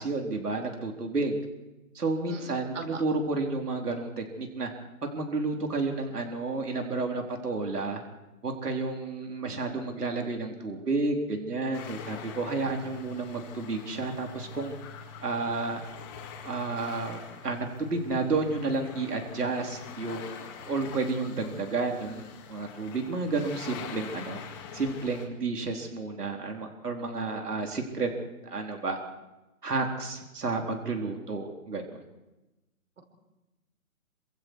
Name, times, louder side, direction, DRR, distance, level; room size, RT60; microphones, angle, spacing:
voice 1, 0.0-1.4 1.9-4.7 5.0-8.0 8.4-14.7 15.2-15.8 16.4-24.4 24.7-28.1 28.4-29.0 29.6-32.0, right 3 dB, 85° right, 2 dB, 4.3 m, -31 dB
voice 2, 2.3-3.0, right 4 dB, 50° right, 4 dB, 5.3 m, -40 dB
sound 1, 11.7-25.3, left 6 dB, 15° left, 2.3 m, -44 dB
28.0 x 26.0 x 4.9 m, 1.0 s
hypercardioid pair, 170°, 45 cm